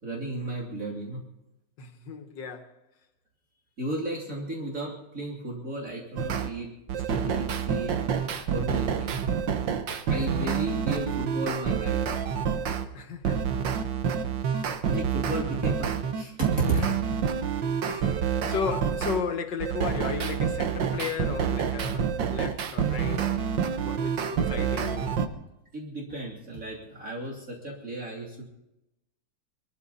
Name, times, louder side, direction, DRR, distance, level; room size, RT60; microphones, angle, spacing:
voice 1, 0.0-1.2 3.8-8.0 8.5-9.2 10.1-12.0 14.2-14.5 14.9-16.9 24.5-24.7 25.7-28.5, right 2 dB, 45° right, 3.6 m, -34 dB
voice 2, 1.8-2.7 12.9-13.5 14.5-14.8 16.7-16.9 17.9-25.2, left 6 dB, 75° left, 2.2 m, -35 dB
sound 1, 6.2-6.5 6.9-12.9 13.2-19.2 19.6-25.3, right 7 dB, 80° right, 1.8 m, -28 dB
23.0 x 14.5 x 4.2 m
omnidirectional pair, 2.0 m